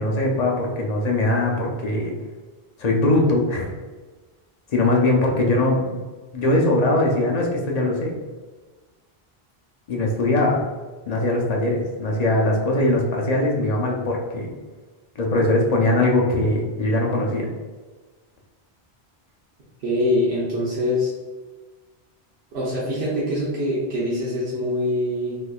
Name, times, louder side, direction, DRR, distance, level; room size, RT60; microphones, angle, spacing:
voice 1, 0.0-2.1 2.8-3.7 4.7-5.9 6.3-8.1 9.9-10.6 11.1-14.5 15.2-17.5, left 2 dB, 50° left, -1 dB, 0.5 m, -21 dB
voice 2, 19.8-21.1 22.5-25.4, left 1 dB, 85° right, -7 dB, 1.1 m, -24 dB
3.6 x 3.0 x 2.3 m, 1.3 s
omnidirectional pair, 1.1 m